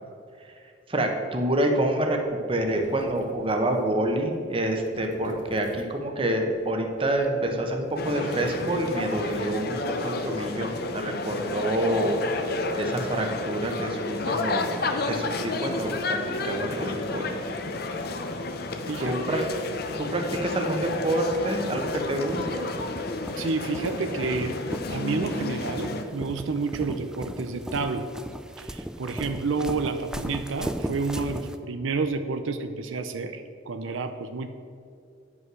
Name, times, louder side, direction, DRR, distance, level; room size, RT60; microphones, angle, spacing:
voice 1, 0.9-2.2 2.5-12.2 12.8-14.8 15.0-16.2 16.4-17.3 19.0-19.5 20.0-22.7, right 1 dB, 25° right, 3 dB, 1.0 m, -27 dB
sound 1, 2.2-6.1 6.4-9.6, left 1 dB, 80° left, 1.4 m, -44 dB
sound 2, 8.0-26.0, left 2 dB, 50° left, 0.7 m, -31 dB
sound 3, 18.9-31.6, equal, 5° right, 0.3 m, -38 dB
voice 2, 18.9-19.2 23.4-24.6 24.9-28.1 28.6-34.5, right 4 dB, 85° right, 8 dB, 0.6 m, -30 dB
9.7 x 5.6 x 6.1 m, 2.4 s
head